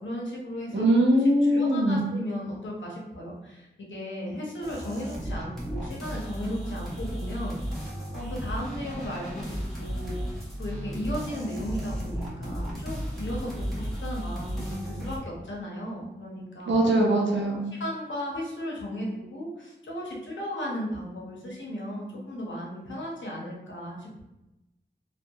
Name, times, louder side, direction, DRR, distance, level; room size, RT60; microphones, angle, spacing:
voice 1, 0.0-0.9 1.4-16.8 17.7-24.2, equal, 90° left, -3 dB, 0.7 m, -36 dB
voice 2, 0.7-2.0 16.7-17.6, right 1 dB, 85° right, -1 dB, 0.6 m, -21 dB
sound 1, 4.6-15.2, equal, ahead, 1.0 m, -34 dB
2.7 x 2.2 x 2.3 m, 0.97 s
cardioid pair, 45°, 19 cm